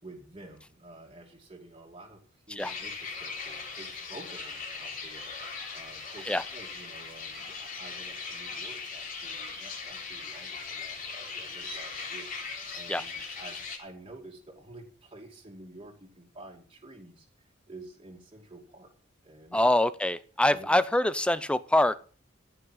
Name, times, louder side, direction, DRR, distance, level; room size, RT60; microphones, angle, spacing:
voice 1, 0.0-2.2 2.5-5.3 5.7-17.3 17.7-18.9 19.2-19.7 20.5-20.7, right 2 dB, 25° right, -1 dB, 2.6 m, -49 dB
sound 1, 2.6-13.8, left 4 dB, 45° left, 3.8 m, -39 dB
voice 2, 19.5-22.0, left 1 dB, 5° left, 14 dB, 0.6 m, -25 dB
14.5 x 6.1 x 7.5 m, 0.41 s
head